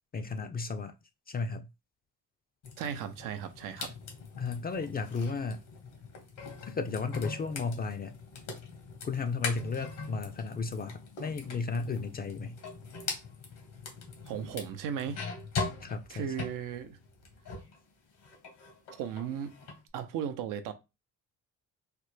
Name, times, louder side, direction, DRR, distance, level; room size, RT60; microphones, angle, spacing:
voice 1, 0.1-0.9 1.3-1.7 4.4-5.6 6.7-8.1 9.0-12.6 15.8-16.5, left 4 dB, 30° left, 0.4 m, -34 dB
sound 1, 2.6-17.8 18.1-19.8, left 4 dB, 80° left, 1.1 m, -42 dB
voice 2, 2.8-3.9 14.3-15.2 16.1-17.0 19.0-19.6 19.9-20.7, right 8 dB, 85° right, 0.6 m, -36 dB
3.2 x 2.1 x 3.1 m
cardioid pair, 75°, 32 cm